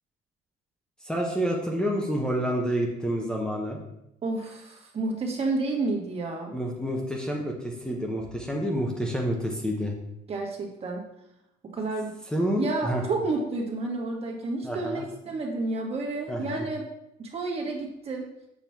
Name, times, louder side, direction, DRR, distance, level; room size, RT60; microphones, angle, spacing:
voice 1, 1.0-3.8 6.5-9.9 12.3-13.0 14.6-15.1 16.3-16.7, equal, 5° left, -1 dB, 1.0 m, -28 dB
voice 2, 4.2-6.5 10.3-11.1 11.6-12.2 12.6-16.8 17.2-18.2, right 3 dB, 35° right, 0 dB, 1.6 m, -30 dB
7.2 x 3.0 x 5.8 m, 0.83 s
cardioid pair, 110°, 17 cm